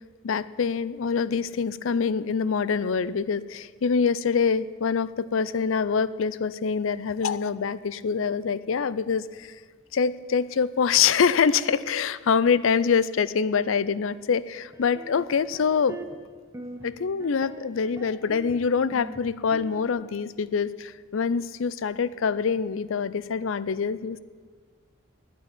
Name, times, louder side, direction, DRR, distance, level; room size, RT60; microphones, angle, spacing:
voice 1, 0.2-9.5 9.9-16.0 16.8-24.2, left 6 dB, 75° left, 17 dB, 0.5 m, -25 dB
sound 1, 14.7-16.2 16.5-16.9 17.2-18.6 18.9-19.9, right 1 dB, 15° right, 1.0 m, -42 dB
9.2 x 9.2 x 9.9 m, 1.5 s
head